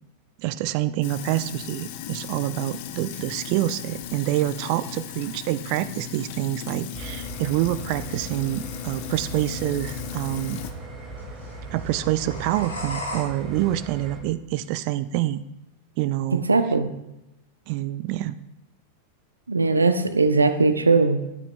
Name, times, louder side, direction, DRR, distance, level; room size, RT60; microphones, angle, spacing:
voice 1, 0.4-10.6 11.7-15.4 16.0-16.4 17.7-18.4, right 15 dB, 45° right, 15 dB, 0.3 m, -26 dB
Sink (filling or washing), 1.0-10.7, left 11 dB, 50° left, 0.6 m, -37 dB
sound 1, 1.9-13.2, left 1 dB, 75° left, 3.5 m, -42 dB
sound 2, 6.9-14.2, right 2 dB, 20° right, 1.8 m, -38 dB
voice 2, 16.5-16.9 19.5-21.2, right 3 dB, 80° right, 10 dB, 0.7 m, -19 dB
12.0 x 8.5 x 2.2 m, 0.90 s
figure-of-eight pair, 90°, 0 cm